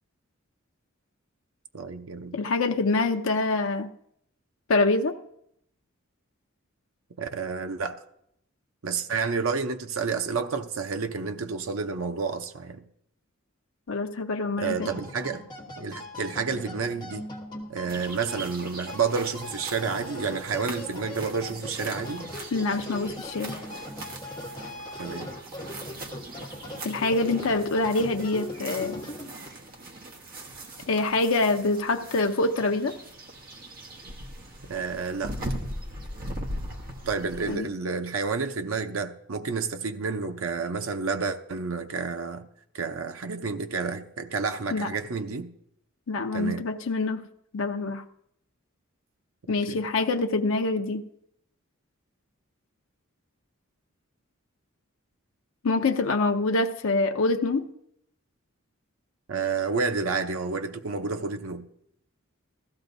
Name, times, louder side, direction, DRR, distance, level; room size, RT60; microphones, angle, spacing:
voice 1, 1.7-2.4 7.2-8.0 8.8-12.9 14.6-15.5 15.8-17.3 17.7-22.3 25.0-25.3 34.6-35.4 37.1-42.5 42.7-45.5 46.3-46.7 49.4-49.8 59.3-61.6, right 5 dB, 80° right, 0.7 m, -30 dB
voice 2, 2.3-3.9 4.7-5.2 13.9-14.9 22.5-23.6 26.8-29.0 30.9-32.9 37.5-37.7 44.7-44.9 46.1-47.2 47.5-48.0 49.5-51.0 55.6-57.7, left 3 dB, 70° left, 0.6 m, -25 dB
sound 1, 14.6-29.5, left 1 dB, 20° left, 1.5 m, -40 dB
sound 2, 17.9-37.6, right 1 dB, 45° right, 1.2 m, -40 dB
16.0 x 13.5 x 2.6 m
head